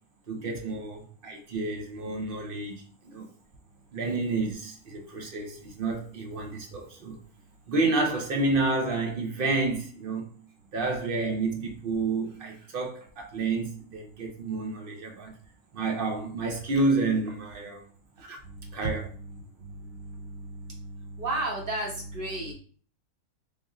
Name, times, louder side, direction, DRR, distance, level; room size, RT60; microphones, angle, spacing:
voice 1, 0.3-3.3 3.9-7.2 7.7-10.3 10.7-15.3 15.7-17.8 18.2-18.4 18.7-19.1, right 3 dB, 60° right, 0.6 m, -29 dB
voice 2, 18.4-22.5, right 2 dB, 40° right, 1.1 m, -35 dB
3.6 x 2.5 x 3.6 m
omnidirectional pair, 1.6 m